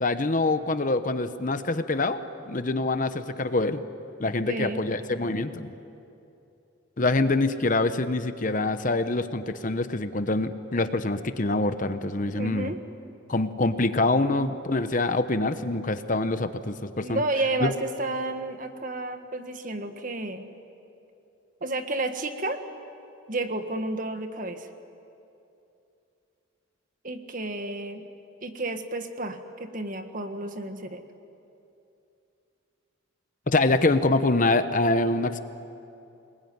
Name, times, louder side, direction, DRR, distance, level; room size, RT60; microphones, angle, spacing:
voice 1, 0.0-2.2 2.5-3.8 4.2-5.7 7.0-12.7 13.3-17.2 17.6-17.7 33.5-35.4, left 2 dB, 40° left, 10 dB, 0.9 m, -25 dB
voice 2, 4.5-4.8 12.4-12.8 14.4-14.5 17.0-20.5 21.6-22.6 23.3-24.7 27.0-28.0 28.4-31.0, right 2 dB, 40° right, 7 dB, 1.6 m, -31 dB
27.0 x 20.5 x 9.6 m, 2.7 s
head